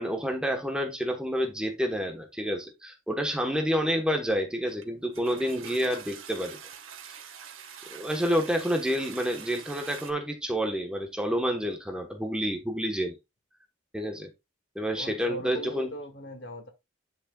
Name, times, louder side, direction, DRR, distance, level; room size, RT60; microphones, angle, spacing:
voice 1, 0.0-6.6 7.0-7.2 7.9-13.1 13.9-14.3 14.7-15.9, equal, 5° right, 1.2 m, -29 dB
Toilet flush, 4.7-4.8 5.1-10.1, right 7 dB, 85° right, 1.6 m, -44 dB
voice 2, 15.0-16.7, equal, 60° left, 2.1 m, -39 dB
10.0 x 6.5 x 2.4 m
head